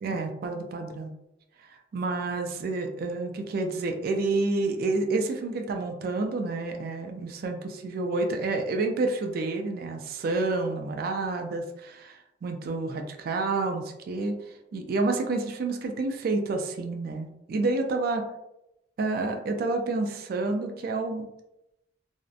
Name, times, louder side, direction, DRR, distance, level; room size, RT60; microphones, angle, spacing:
voice 1, 0.0-1.1 1.7-14.4 14.7-18.2 19.0-21.3, right 3 dB, 55° right, 4 dB, 0.3 m, -29 dB
2.6 x 2.1 x 2.4 m, 0.87 s
head